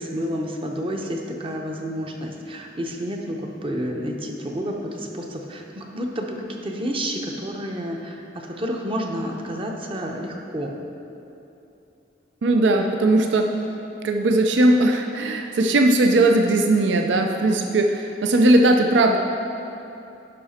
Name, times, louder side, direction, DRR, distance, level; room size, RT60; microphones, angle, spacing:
voice 1, 0.0-10.7, equal, 30° right, 1 dB, 0.7 m, -30 dB
voice 2, 12.4-13.6 14.0-19.2, right 2 dB, 70° right, 4 dB, 0.5 m, -18 dB
10.5 x 5.7 x 4.2 m, 2.8 s
head